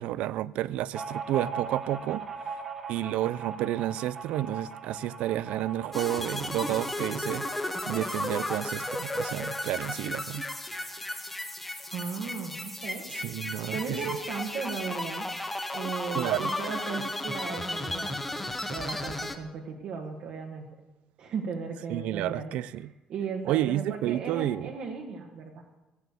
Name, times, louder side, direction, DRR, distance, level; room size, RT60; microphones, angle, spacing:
voice 1, 0.0-2.6 2.9-10.4 13.1-14.2 16.1-16.5 21.9-22.9 23.4-24.7, right 14 dB, 75° right, 0.5 m, -31 dB
sound 1, 0.9-14.1 14.3-14.4 14.7-15.5, right 5 dB, 25° right, 1.4 m, -42 dB
sound 2, 5.9-19.4, left 1 dB, 5° left, 1.1 m, -34 dB
voice 2, 11.9-13.0 13.6-15.3 15.7-20.7 21.2-22.5 23.1-25.6, right 5 dB, 60° right, 1.7 m, -36 dB
15.5 x 10.5 x 8.3 m
cardioid pair, 155°, 2 cm